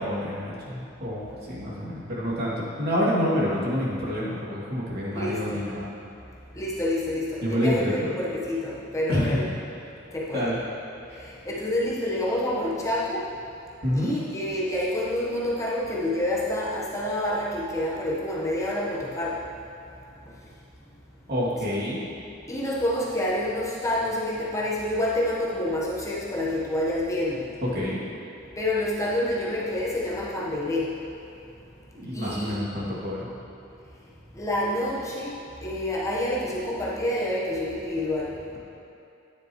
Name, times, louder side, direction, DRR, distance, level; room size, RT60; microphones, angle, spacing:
voice 1, 0.0-5.9 7.4-8.1 9.1-9.4 10.3-10.6 11.1-11.2 13.8-14.1 21.3-22.0 27.7-28.0 31.9-33.3, equal, 50° right, -8 dB, 2.7 m, -28 dB
voice 2, 5.1-5.6 6.5-9.4 10.1-10.5 11.2-13.3 13.9-19.4 22.5-27.5 28.6-30.9 32.1-32.6 34.3-35.3 35.6-38.6, left 1 dB, 15° left, -6 dB, 1.2 m, -28 dB
13.0 x 10.0 x 3.2 m, 2.7 s
head